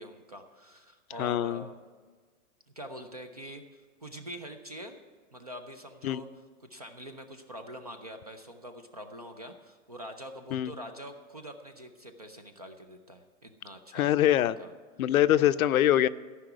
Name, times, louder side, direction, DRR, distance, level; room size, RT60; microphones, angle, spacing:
voice 1, 0.0-1.8 2.8-5.0 5.3-6.3 6.6-14.7 15.3-15.5, equal, 30° right, 7 dB, 0.4 m, -45 dB
voice 2, 1.2-1.6 6.0-6.2 10.5-10.7 13.9-14.6 15.0-16.1, left 12 dB, 70° left, 14 dB, 0.6 m, -24 dB
14.5 x 5.8 x 8.9 m, 1.5 s
hypercardioid pair, 175°, 44 cm